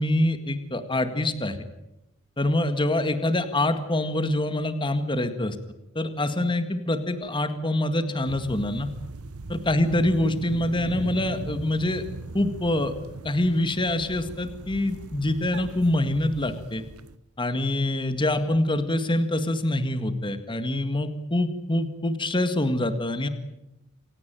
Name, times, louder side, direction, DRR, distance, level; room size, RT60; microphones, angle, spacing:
voice 1, 0.0-1.6 2.4-5.6 6.0-8.9 9.5-12.0 12.3-12.9 13.2-16.8 17.4-23.3, left 1 dB, 25° left, 10 dB, 1.8 m, -25 dB
sound 1, 8.2-17.2, right 3 dB, 90° right, 1.0 m, -39 dB
28.0 x 17.0 x 9.2 m, 0.88 s
head